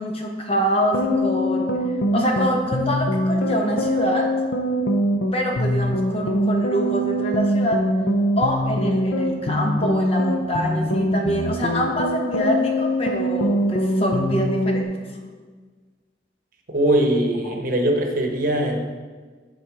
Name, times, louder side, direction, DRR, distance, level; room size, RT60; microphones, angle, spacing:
voice 1, 0.0-1.7 2.1-4.3 5.3-7.8 8.4-15.1 17.4-17.6, equal, 35° left, 1 dB, 0.9 m, -25 dB
sound 1, 0.8-14.8, equal, 80° left, 0.6 m, -23 dB
voice 2, 16.7-18.8, right 1 dB, 50° right, 2 dB, 1.0 m, -21 dB
7.2 x 4.2 x 4.8 m, 1.4 s
head